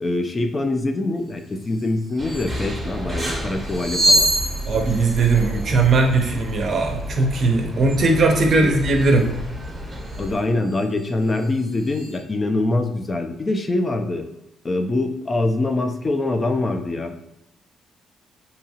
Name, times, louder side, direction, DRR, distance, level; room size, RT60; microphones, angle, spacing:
voice 1, 0.0-4.3 8.5-8.7 10.2-14.3 14.6-17.2, left 2 dB, 30° left, 6 dB, 0.3 m, -24 dB
sound 1, 1.7-1.9 2.2-2.6 3.5-6.6 8.9-9.2 10.0-10.3 10.7-12.2, right 1 dB, 80° left, 1.1 m, -26 dB
sound 2, 2.2-10.4, equal, 20° right, 0.7 m, -31 dB
voice 2, 4.7-9.3, right 3 dB, 55° right, 3 dB, 0.5 m, -19 dB
2.7 x 2.3 x 2.7 m, 0.89 s
cardioid pair, 90°, 0 cm